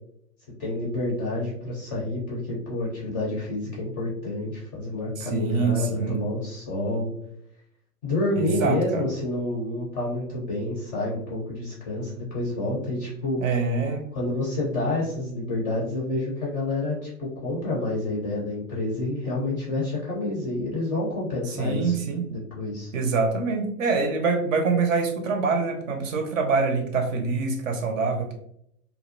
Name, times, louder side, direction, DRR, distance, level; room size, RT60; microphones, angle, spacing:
voice 1, 0.6-7.1 8.0-13.4 14.1-22.0 22.3-22.9, left 2 dB, 20° left, -5 dB, 0.4 m, -28 dB
voice 2, 5.2-6.2 8.4-9.0 13.4-14.1 21.6-22.2 22.9-28.3, right 4 dB, 55° right, 4 dB, 0.6 m, -25 dB
2.6 x 2.1 x 2.5 m, 0.72 s
hypercardioid pair, 110°, 47 cm